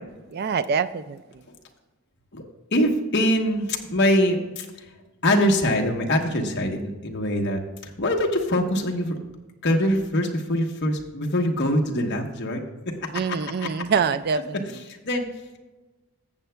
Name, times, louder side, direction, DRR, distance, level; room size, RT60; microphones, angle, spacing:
voice 1, 0.3-1.4 13.1-14.8, right 6 dB, 45° right, 14 dB, 0.3 m, -25 dB
voice 2, 2.7-4.7 5.2-9.2 9.6-12.6 13.0-13.1 14.9-15.2, equal, 50° left, 2 dB, 1.1 m, -23 dB
14.5 x 7.8 x 2.3 m, 1.2 s
head